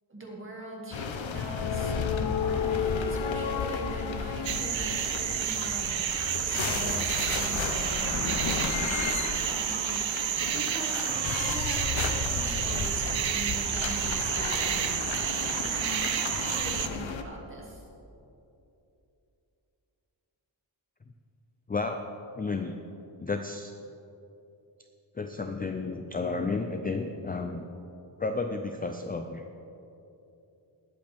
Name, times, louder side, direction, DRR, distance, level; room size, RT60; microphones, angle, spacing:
voice 1, 0.1-8.9 9.6-10.1 10.3-14.9 15.6-17.8, right 1 dB, 25° right, -2 dB, 2.1 m, -42 dB
sound 1, 0.9-17.2, left 6 dB, 85° left, 0.9 m, -32 dB
sound 2, 4.4-16.9, right 10 dB, 80° right, 0.7 m, -30 dB
voice 2, 21.7-22.0 22.4-22.7 23.2-23.7 25.2-27.7 28.2-29.4, left 3 dB, 20° left, 6 dB, 0.4 m, -32 dB
20.0 x 7.8 x 3.5 m, 2.8 s
wide cardioid pair, 145°, 46 cm